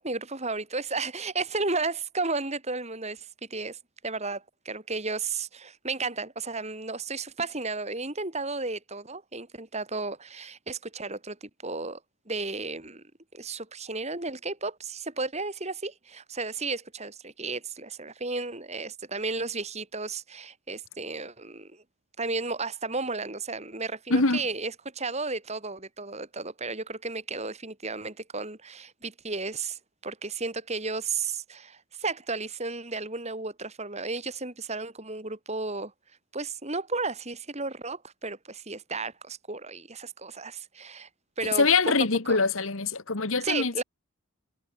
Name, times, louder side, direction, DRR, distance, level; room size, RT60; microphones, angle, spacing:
voice 1, 0.0-3.8 4.0-12.0 12.3-13.0 13.3-21.8 22.2-35.9 36.3-41.1 41.4-41.7 42.3-42.4 43.4-43.8, right 3 dB, 30° right, 3.5 m, -33 dB
voice 2, 24.1-24.4 41.6-43.8, left 4 dB, 65° left, 1.7 m, -24 dB
head